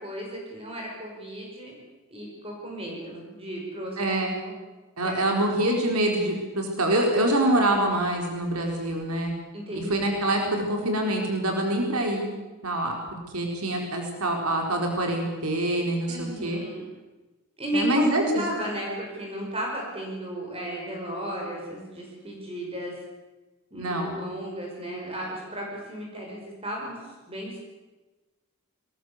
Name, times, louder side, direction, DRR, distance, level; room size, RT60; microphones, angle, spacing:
voice 1, 0.0-1.7 2.1-4.0 4.4-4.5 5.0-5.2 9.5-9.9 16.1-16.9 17.6-23.0 23.7-27.6, equal, 25° right, -1 dB, 5.6 m, -33 dB
voice 2, 4.0-4.3 5.0-9.3 9.9-12.3 12.6-16.6 17.7-18.4 23.8-24.2, right 1 dB, 90° right, 2 dB, 4.4 m, -25 dB
22.0 x 19.5 x 8.1 m, 1.2 s
head